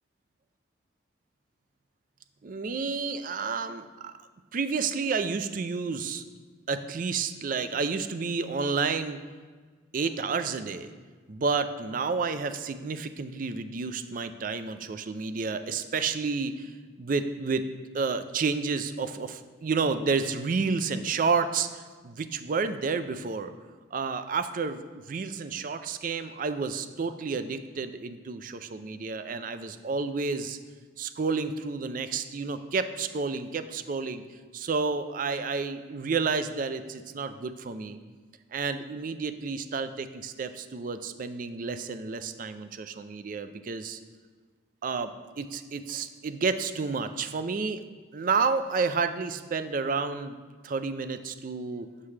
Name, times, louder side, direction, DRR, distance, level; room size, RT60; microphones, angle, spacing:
voice 1, 2.4-4.1 4.5-6.2 6.7-9.2 9.9-10.9 11.3-16.7 17.0-17.6 17.9-23.5 23.9-24.8 25.1-30.6 31.0-34.2 34.5-38.0 38.5-44.0 44.8-47.8 48.1-50.4 50.6-51.9, right 4 dB, 45° right, 10 dB, 0.4 m, -30 dB
7.4 x 7.0 x 3.3 m, 1.5 s
head